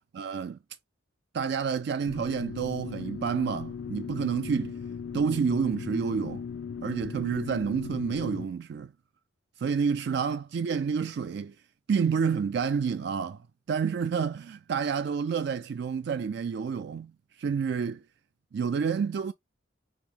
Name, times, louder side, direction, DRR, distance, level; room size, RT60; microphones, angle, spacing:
voice 1, 0.1-0.6 1.3-4.8 5.1-6.4 6.8-8.9 9.6-11.5 11.9-13.4 13.7-17.1 17.4-18.0 18.5-19.3, right 6 dB, 60° right, 0.3 m, -29 dB
sound 1, 2.1-8.5, left 6 dB, 75° left, 0.4 m, -38 dB
6.2 x 2.1 x 3.5 m
head